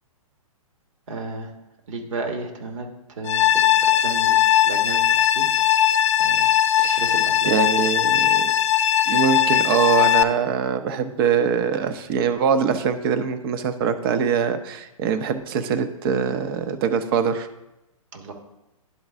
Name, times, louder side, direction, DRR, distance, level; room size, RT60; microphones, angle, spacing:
voice 1, 1.1-1.5 1.9-5.5 6.2-6.5 6.9-7.6 18.1-18.3, right 3 dB, 60° right, 4 dB, 1.4 m, -33 dB
sound 1, 3.3-10.2, left 11 dB, 55° left, 0.5 m, -19 dB
voice 2, 7.5-8.5 9.1-17.5, right 7 dB, 40° right, 9 dB, 0.7 m, -23 dB
11.0 x 3.9 x 3.5 m, 0.94 s
hypercardioid pair, 125°, 18 cm